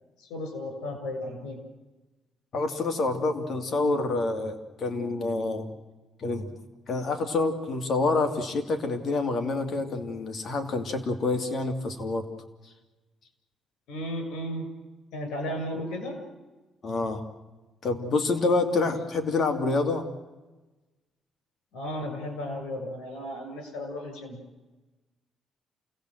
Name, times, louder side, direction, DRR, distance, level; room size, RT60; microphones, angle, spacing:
voice 1, 0.2-1.6 13.9-14.7 15.1-16.2 18.8-18.9 21.7-24.4, left 1 dB, 85° left, 6 dB, 6.9 m, -34 dB
voice 2, 2.5-5.7 6.2-6.5 6.9-12.3 16.8-17.2 17.8-20.0, left 3 dB, 55° left, 6 dB, 2.6 m, -27 dB
28.5 x 18.5 x 7.9 m, 1.2 s
cardioid pair, 90°, 0 cm